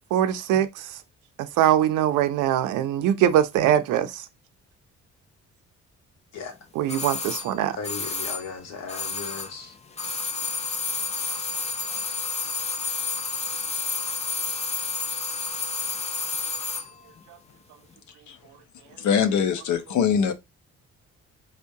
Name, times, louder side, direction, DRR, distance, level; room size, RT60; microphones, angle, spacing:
voice 1, 0.1-1.0 1.4-4.3 6.8-7.8, right 11 dB, 80° right, 0.5 m, -22 dB
sound 1, 6.9-9.6 9.9-16.9 17.2-17.3, left 4 dB, 20° left, 0.4 m, -30 dB
voice 2, 7.8-9.7, left 5 dB, 55° left, 1.0 m, -36 dB
voice 3, 19.0-20.3, left 7 dB, 75° left, 0.6 m, -22 dB
4.4 x 2.2 x 2.7 m
cardioid pair, 90°, 30 cm